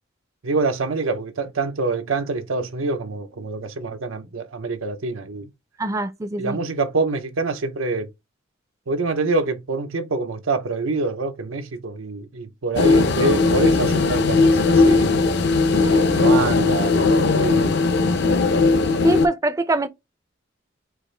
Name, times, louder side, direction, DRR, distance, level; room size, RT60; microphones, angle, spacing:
voice 1, 0.4-5.5 6.4-8.1 8.9-15.1 15.8-17.7, right 3 dB, 90° right, 0.6 m, -26 dB
voice 2, 5.8-6.6 19.0-19.9, right 2 dB, 15° right, 0.4 m, -23 dB
sound 1, 12.8-19.3, left 3 dB, 55° left, 0.6 m, -18 dB
4.7 x 2.5 x 3.2 m
head